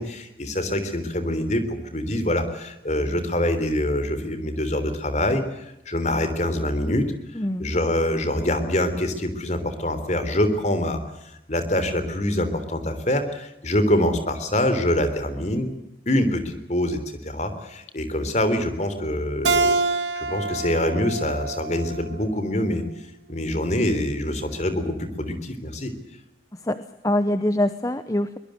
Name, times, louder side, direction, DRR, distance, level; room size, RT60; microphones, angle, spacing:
voice 1, 0.0-7.1 7.6-15.7 16.1-19.8 20.1-22.9 23.3-25.9, left 1 dB, 40° left, 10 dB, 3.5 m, -25 dB
voice 2, 7.4-7.7 26.6-28.4, left 1 dB, 20° left, 11 dB, 0.8 m, -24 dB
Keyboard (musical), 19.4-22.7, right 3 dB, 80° right, 1.6 m, -26 dB
23.5 x 21.0 x 8.0 m, 0.88 s
head